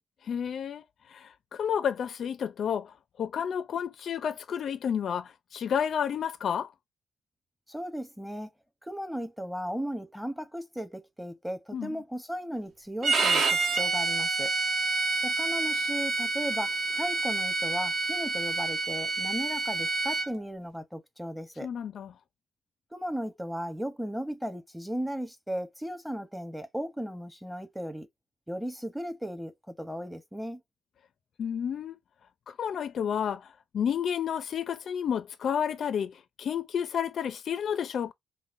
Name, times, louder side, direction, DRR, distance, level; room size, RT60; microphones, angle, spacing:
voice 1, 0.2-0.8 1.1-6.7 11.7-12.0 21.6-22.1 31.4-32.0 32.5-38.1, left 8 dB, 60° left, 0.4 m, -31 dB
voice 2, 7.7-8.5 8.8-14.5 15.2-21.7 22.9-28.1 28.5-30.6, equal, 5° right, 0.8 m, -36 dB
Bowed string instrument, 13.0-20.3, right 3 dB, 60° right, 1.0 m, -28 dB
5.3 x 2.1 x 2.5 m
cardioid pair, 95°, 0 cm